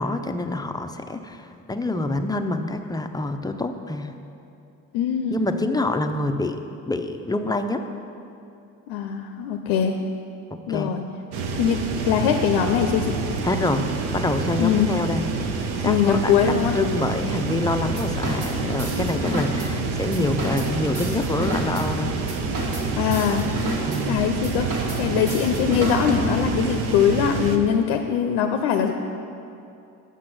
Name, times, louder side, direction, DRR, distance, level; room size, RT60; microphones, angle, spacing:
voice 1, 0.0-4.1 5.3-6.6 6.9-7.8 10.7-10.9 13.4-15.2 15.8-22.1 23.8-24.2, left 2 dB, 10° left, 6 dB, 0.5 m, -26 dB
voice 2, 4.9-5.4 8.9-10.0 10.7-11.0 11.5-13.2 14.6-14.9 15.9-16.8 23.0-23.4 24.0-24.7 25.0-28.9, left 8 dB, 80° left, 5 dB, 0.6 m, -22 dB
sound 1, 11.3-27.6, right 4 dB, 70° right, 0.8 m, -28 dB
sound 2, 17.7-26.6, right 1 dB, 50° right, 1.8 m, -31 dB
6.9 x 6.2 x 6.0 m, 2.7 s
supercardioid pair, 70°, 39 cm